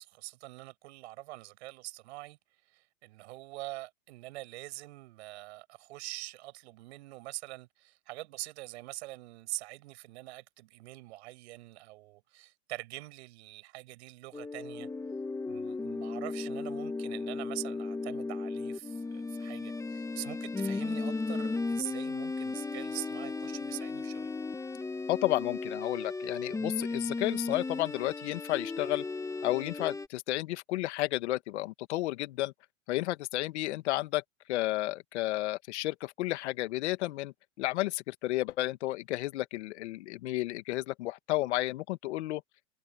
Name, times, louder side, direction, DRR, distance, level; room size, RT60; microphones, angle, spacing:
voice 1, 0.0-2.4 2.7-14.9 15.5-24.3, right 19 dB, 60° right, 7.6 m, -44 dB
sound 1, 14.3-30.1, left 3 dB, 10° left, 1.6 m, -35 dB
voice 2, 25.1-29.0 29.4-32.5 32.9-34.2 34.5-42.4, left 17 dB, 60° left, 1.8 m, -32 dB
hypercardioid pair, 130°, 38 cm